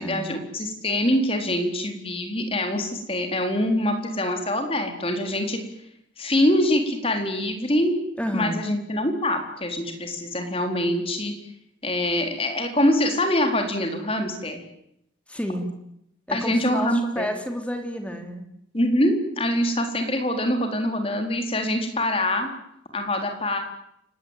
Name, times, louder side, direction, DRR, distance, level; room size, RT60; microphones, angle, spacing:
voice 1, 0.0-5.6 6.2-8.0 8.3-11.3 11.8-14.6 16.3-17.3 18.7-22.5 22.9-23.6, left 1 dB, 30° left, 5 dB, 4.3 m, -24 dB
voice 2, 8.2-8.7 15.3-15.7 16.3-18.4, equal, 5° left, 5 dB, 3.4 m, -30 dB
29.5 x 18.5 x 9.3 m, 0.76 s
head